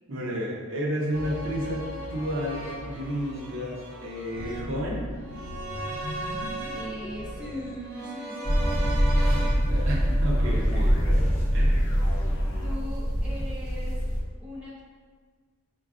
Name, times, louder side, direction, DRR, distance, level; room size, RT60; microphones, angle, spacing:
voice 1, 0.1-5.1 9.3-9.4 9.7-11.9, equal, 60° right, -3 dB, 0.6 m, -32 dB
sound 1, 1.1-11.3 11.6-11.7, right 2 dB, 85° right, 0.9 m, -38 dB
sound 2, 1.6-3.0 4.3-8.6 10.3-11.3 11.6-12.8, left 1 dB, 55° left, 0.4 m, -40 dB
voice 2, 6.7-10.0 12.6-14.1 14.4-14.9, left 1 dB, 5° right, -8 dB, 0.7 m, -40 dB
sound 3, 8.4-14.2, equal, 30° left, 0.8 m, -24 dB
5.4 x 2.3 x 2.4 m, 1.5 s
head